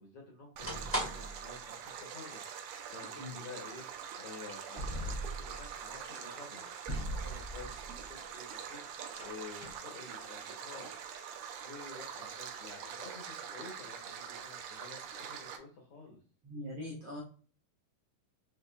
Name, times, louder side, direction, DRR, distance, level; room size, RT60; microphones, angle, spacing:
voice 1, 0.0-3.9 4.1-10.9 11.6-16.2, left 4 dB, 70° left, 0 dB, 1.4 m, -51 dB
sound 1, 0.6-1.5 1.9-2.0 2.2-2.3 3.1-3.3 4.6-5.7 6.9-8.3 8.6-9.7, right 1 dB, 10° right, 0.7 m, -39 dB
Stream, 0.6-15.6, right 8 dB, 80° right, 2.1 m, -44 dB
voice 2, 16.4-17.2, left 1 dB, 65° right, -4 dB, 1.3 m, -41 dB
6.4 x 3.1 x 2.2 m, 0.41 s
omnidirectional pair, 3.8 m